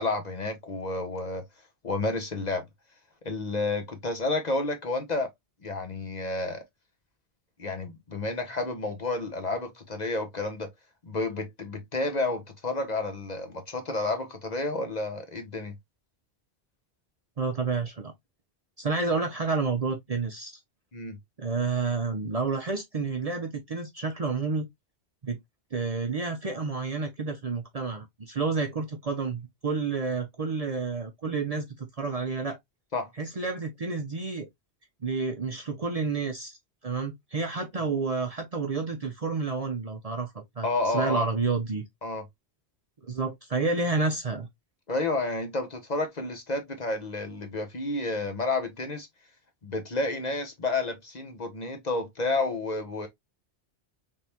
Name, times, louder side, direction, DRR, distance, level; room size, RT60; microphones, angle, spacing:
voice 1, 0.0-1.4 1.8-2.7 3.2-5.3 5.6-6.6 7.6-10.7 11.0-15.7 20.9-21.2 32.9-33.1 40.6-41.3 42.0-42.2 44.9-49.1 49.6-53.1, left 2 dB, 40° left, 0.9 m, -30 dB
voice 2, 17.4-18.1 18.8-20.5 21.4-24.7 25.2-25.4 25.7-32.6 33.2-34.5 35.0-36.6 36.8-41.8 43.0-44.5, right 4 dB, 40° right, 0.6 m, -30 dB
3.6 x 3.3 x 2.8 m
omnidirectional pair, 1.1 m